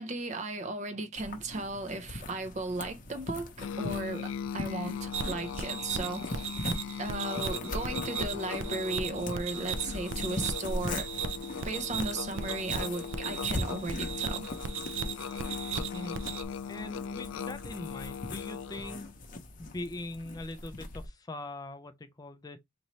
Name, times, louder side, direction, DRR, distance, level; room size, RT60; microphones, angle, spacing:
voice 1, 0.0-6.4 7.0-11.1 11.6-14.5, right 2 dB, 35° right, 0.6 m, -36 dB
sound 1, 1.2-21.1, left 2 dB, 40° left, 0.7 m, -41 dB
Musical instrument, 3.6-19.1, left 7 dB, 85° left, 0.3 m, -39 dB
sound 2, 5.1-16.4, right 6 dB, 85° right, 0.5 m, -37 dB
voice 2, 16.7-19.1 19.6-22.6, left 2 dB, 20° left, 0.4 m, -41 dB
4.1 x 2.6 x 3.0 m
head